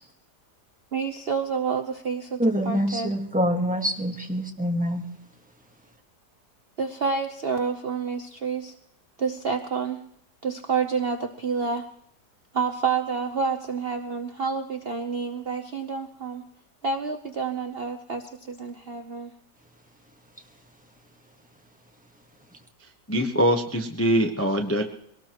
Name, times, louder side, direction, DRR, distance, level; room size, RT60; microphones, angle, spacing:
voice 1, 0.9-3.1 4.2-4.3 6.8-8.7 9.2-10.0 10.4-11.9 12.5-16.4 16.8-19.3, right 5 dB, 45° right, 4 dB, 0.9 m, -29 dB
voice 2, 2.4-5.0, equal, 5° right, 2 dB, 1.3 m, -25 dB
voice 3, 23.1-24.8, equal, 10° left, 3 dB, 0.8 m, -23 dB
23.0 x 18.5 x 3.0 m, 0.70 s
omnidirectional pair, 1.8 m